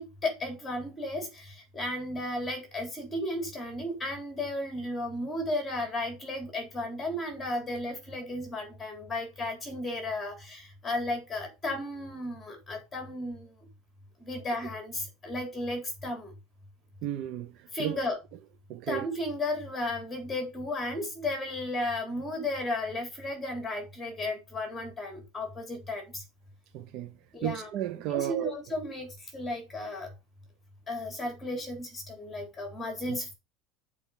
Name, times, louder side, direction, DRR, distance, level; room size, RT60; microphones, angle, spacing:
voice 1, 0.0-13.5 14.2-16.3 17.7-18.2 18.9-26.2 27.3-30.1 30.9-33.3, left 1 dB, 10° left, 3.9 m, -34 dB
voice 2, 17.0-18.0 18.7-19.1 26.7-27.1 27.4-28.5 33.1-33.2, right 13 dB, 45° right, 0.6 m, -33 dB
7.9 x 4.8 x 7.2 m
cardioid pair, 175°, 0 cm